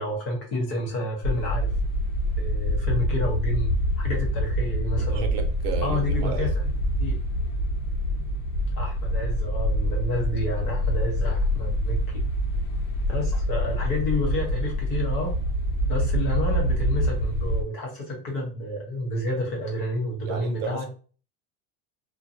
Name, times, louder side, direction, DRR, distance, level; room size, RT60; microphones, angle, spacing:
voice 1, 0.0-1.7 2.4-3.7 4.0-5.3 5.8-6.7 7.0-7.1 8.8-12.2 13.1-15.4 15.9-20.9, left 1 dB, 35° left, 0.8 m, -30 dB
sound 1, 1.2-17.6, equal, 90° left, 0.9 m, -26 dB
voice 2, 5.0-6.5 20.3-20.9, right 6 dB, 55° right, 0.7 m, -34 dB
2.5 x 2.2 x 2.6 m
supercardioid pair, 170°, 36 cm